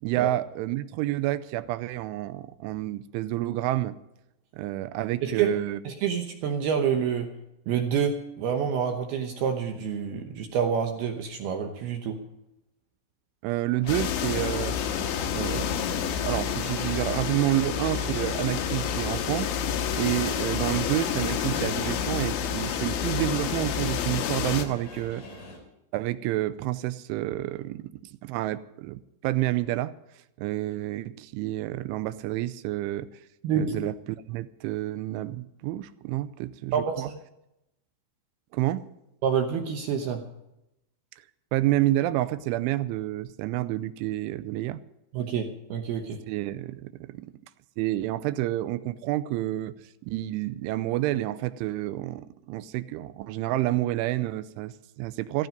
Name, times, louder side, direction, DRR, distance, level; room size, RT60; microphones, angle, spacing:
voice 1, 0.0-4.0 4.5-5.8 13.4-14.8 15.3-19.5 19.9-25.2 25.9-27.9 28.2-29.9 30.4-33.1 33.5-33.9 34.3-37.1 38.5-38.8 41.5-44.8 46.3-47.3 47.8-49.7 50.0-55.5, right 15 dB, 85° right, 14 dB, 3.1 m, -29 dB
voice 2, 5.9-7.3 7.7-12.2 33.4-33.7 36.7-37.2 39.2-40.2 45.1-46.2, right 7 dB, 70° right, 5 dB, 2.6 m, -27 dB
sound 1, 13.8-25.6, left 1 dB, 45° left, 4.8 m, -44 dB
sound 2, 13.9-24.7, left 8 dB, 85° left, 3.7 m, -29 dB
15.0 x 15.0 x 5.2 m, 0.88 s
omnidirectional pair, 5.4 m